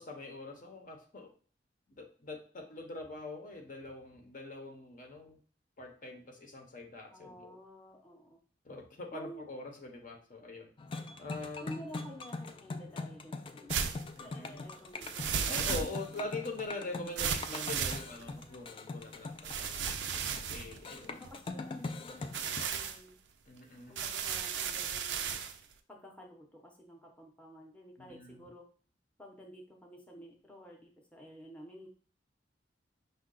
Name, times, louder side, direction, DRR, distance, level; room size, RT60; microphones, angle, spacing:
voice 1, 0.0-1.3 2.0-5.4 5.8-7.6 8.6-10.7 11.2-11.7 14.2-14.6 15.4-19.9 20.4-21.1 23.5-24.0 28.0-28.4, left 2 dB, 50° left, 2 dB, 0.8 m, -43 dB
voice 2, 7.1-8.4 9.1-9.5 11.6-13.9 14.2-15.8 16.1-16.3 21.1-23.1 23.9-25.4 25.9-28.6 29.2-31.9, equal, 5° left, -1 dB, 0.7 m, -51 dB
sound 1, 10.8-22.7, left 3 dB, 30° left, 0.3 m, -42 dB
sound 2, 13.7-14.0 15.0-16.2 17.2-18.4 19.4-21.5 22.2-23.0 24.0-25.6, right 7 dB, 90° right, 0.5 m, -35 dB
5.4 x 2.2 x 3.7 m, 0.42 s
head